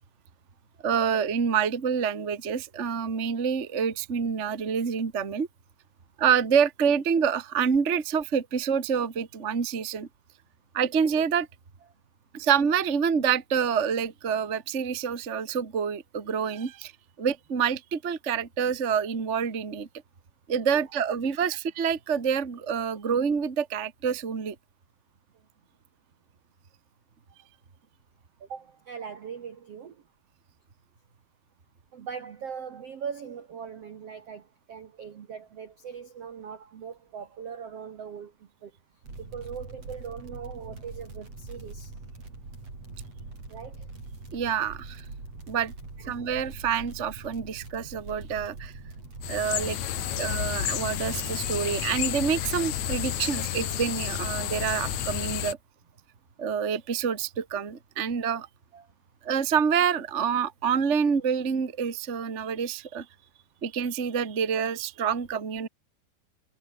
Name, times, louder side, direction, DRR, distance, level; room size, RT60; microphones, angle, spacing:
voice 1, 0.8-5.5 6.2-10.1 10.7-11.5 12.3-16.9 17.2-19.9 20.5-24.5 44.3-45.0 45.5-45.7 46.1-48.7 49.3-49.8 50.2-55.6 56.4-58.5 59.2-63.0 63.6-65.7, right 7 dB, 55° right, 0.7 m, -27 dB
voice 2, 28.4-29.9 31.9-38.3 38.6-38.7 39.2-41.9 43.5-43.9 46.0-46.2 58.7-58.9, right 7 dB, 85° right, 1.3 m, -40 dB
sound 1, 39.0-55.4, right 3 dB, 35° right, 8.6 m, -43 dB
sound 2, 49.2-55.5, left 11 dB, 80° left, 1.7 m, -31 dB
omnidirectional pair, 5.4 m